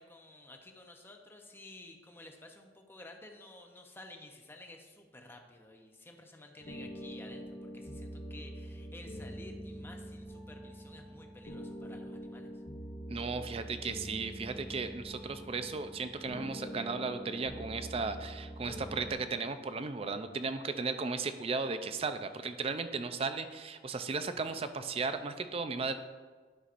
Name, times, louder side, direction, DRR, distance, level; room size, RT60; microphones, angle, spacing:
voice 1, 0.0-12.5, left 2 dB, 15° left, 3 dB, 0.7 m, -53 dB
sound 1, 6.6-19.1, equal, 50° left, 1.1 m, -44 dB
voice 2, 13.1-25.9, right 4 dB, 35° right, 10 dB, 0.4 m, -35 dB
11.0 x 5.7 x 2.5 m, 1.4 s
head